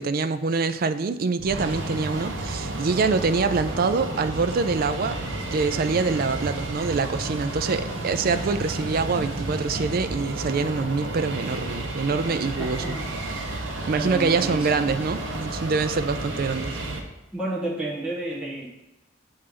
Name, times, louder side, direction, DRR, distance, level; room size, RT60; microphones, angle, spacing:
voice 1, 0.0-5.2 5.5-13.0 13.9-16.8, right 4 dB, 50° right, 11 dB, 0.4 m, -25 dB
sound 1, 1.4-17.0, right 2 dB, 70° right, 0.9 m, -32 dB
voice 2, 12.6-13.0 13.9-14.9 17.3-18.7, right 1 dB, 5° right, -6 dB, 1.3 m, -31 dB
7.2 x 3.3 x 5.2 m, 0.95 s
head